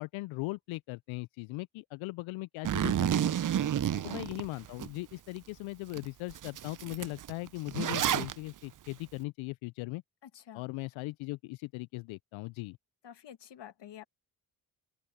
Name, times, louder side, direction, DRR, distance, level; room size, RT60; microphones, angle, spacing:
voice 1, 0.0-3.4 4.0-10.0 10.5-12.8, left 21 dB, 75° left, 0.5 m, -39 dB
Zipper (clothing), 2.6-4.9 5.4-5.5 5.9-6.0 6.3-8.3, right 10 dB, 40° right, 0.7 m, -30 dB
voice 2, 3.5-4.4 10.2-10.6 13.0-14.0, left 10 dB, 60° left, 1.5 m, -49 dB
open air
supercardioid pair, 50°, 47 cm